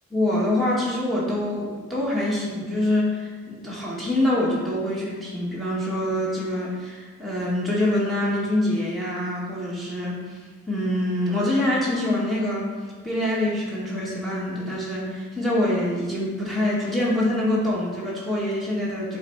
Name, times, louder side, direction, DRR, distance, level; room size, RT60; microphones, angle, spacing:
voice 1, 0.1-10.2 10.7-12.7 13.0-19.2, left 1 dB, ahead, -7 dB, 1.2 m, -25 dB
6.7 x 3.3 x 4.5 m, 1.4 s
head